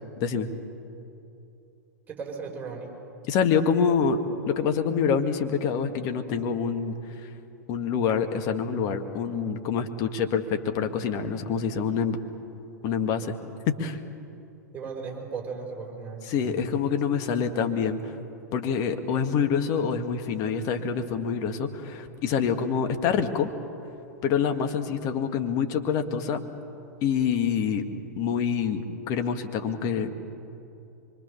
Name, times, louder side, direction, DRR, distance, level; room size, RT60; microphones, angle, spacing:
voice 1, 0.2-0.5 3.3-4.2 4.5-7.0 7.7-12.2 12.8-13.4 13.7-14.0 16.3-18.1 18.5-23.5 24.2-26.4 27.0-27.8 28.2-30.1, left 6 dB, 40° left, 7 dB, 1.8 m, -26 dB
voice 2, 2.1-2.9 14.7-16.7, right 5 dB, 15° right, 0 dB, 5.8 m, -36 dB
25.0 x 23.5 x 7.0 m, 2.8 s
figure-of-eight pair, 100°, 9 cm